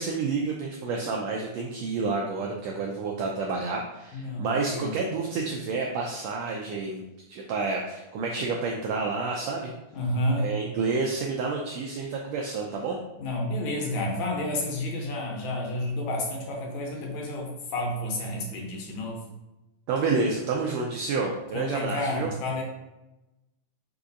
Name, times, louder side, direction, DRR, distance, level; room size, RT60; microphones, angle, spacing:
voice 1, 0.0-7.0 7.3-9.7 10.4-13.0 19.9-22.3, right 4 dB, 85° right, 0 dB, 1.5 m, -29 dB
voice 2, 4.1-5.0 9.9-10.5 13.2-19.2 21.2-21.3 21.5-22.6, left 1 dB, 75° left, 0 dB, 2.1 m, -30 dB
5.0 x 2.4 x 3.9 m, 1.0 s
omnidirectional pair, 3.5 m